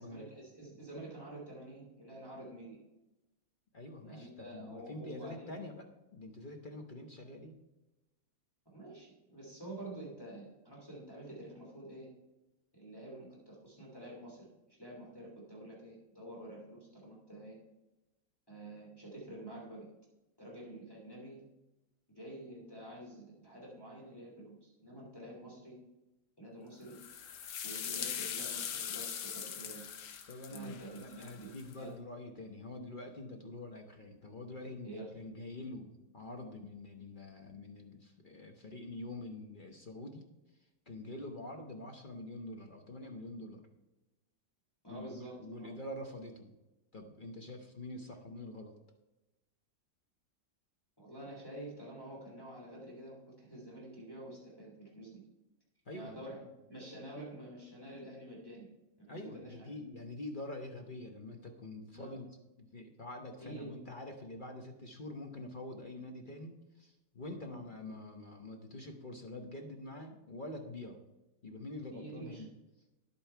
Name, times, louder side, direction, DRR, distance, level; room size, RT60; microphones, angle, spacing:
voice 1, 0.0-2.8 4.0-5.6 8.7-12.1 12.7-17.6 18.5-19.9 20.4-21.4 22.1-25.8 26.4-26.9 27.6-29.9 30.5-31.5 31.8-32.0 34.8-35.3 44.8-45.7 51.0-55.2 55.9-58.7 59.0-59.7 61.9-62.2 63.4-63.7 71.9-72.4, right 1 dB, 10° left, -5 dB, 3.0 m, -48 dB
voice 2, 3.7-7.6 30.3-40.2 40.9-43.6 44.9-46.5 46.9-48.7 55.9-56.2 59.1-62.3 62.6-71.0 71.4-72.5, left 2 dB, 35° left, 3 dB, 0.9 m, -46 dB
sound 1, 26.9-31.7, left 8 dB, 65° left, 1.4 m, -41 dB
10.5 x 8.6 x 4.5 m, 1.0 s
omnidirectional pair, 2.0 m